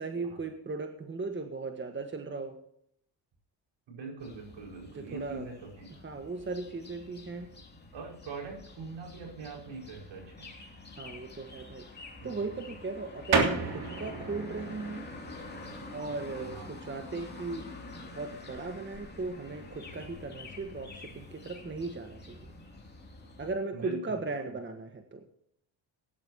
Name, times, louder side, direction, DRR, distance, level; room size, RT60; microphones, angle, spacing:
voice 1, 0.0-2.6 4.9-5.5 6.0-7.5 11.0-15.1 15.9-17.7 17.9-22.5 23.4-25.2, right 3 dB, 20° right, 5 dB, 1.5 m, -37 dB
voice 2, 3.9-5.9 7.9-10.5 12.2-12.5 16.0-16.7 22.9-23.0 23.7-24.2, right 4 dB, 65° right, 0 dB, 5.5 m, -43 dB
sound 1, 4.2-23.5, left 3 dB, 20° left, 2.8 m, -48 dB
sound 2, 13.3-23.5, right 4 dB, 50° right, 3.1 m, -37 dB
17.5 x 10.5 x 2.9 m, 0.70 s
supercardioid pair, 90°, 50 cm